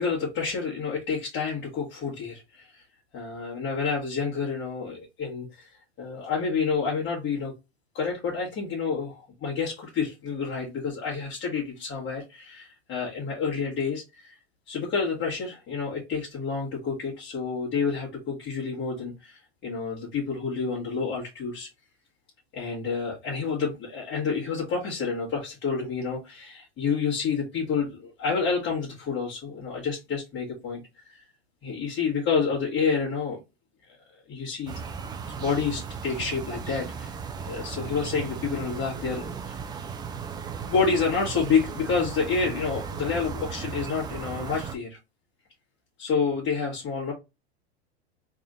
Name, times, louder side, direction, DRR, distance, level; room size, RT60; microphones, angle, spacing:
voice 1, 0.0-2.8 3.1-5.7 6.0-7.5 7.9-14.4 14.7-21.7 22.5-31.3 31.6-33.4 34.3-34.8 35.4-37.2 37.4-39.6 40.6-45.0 46.0-47.1, left 5 dB, 30° left, -5 dB, 1.6 m, -29 dB
sound 1, 34.7-44.8, right 6 dB, 15° right, 0.4 m, -36 dB
3.5 x 2.5 x 3.6 m, 0.24 s
hypercardioid pair, 115°, 33 cm